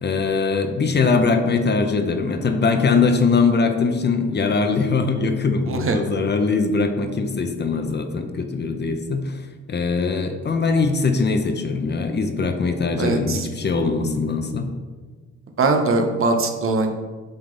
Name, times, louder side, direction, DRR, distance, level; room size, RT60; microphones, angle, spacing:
voice 1, 0.0-9.4 9.7-14.7, left 4 dB, 35° left, 6 dB, 0.7 m, -21 dB
voice 2, 5.7-6.0 13.0-13.5 15.6-17.0, right 3 dB, 45° right, 5 dB, 0.8 m, -21 dB
7.9 x 3.8 x 3.8 m, 1.4 s
cardioid pair, 90°, 30 cm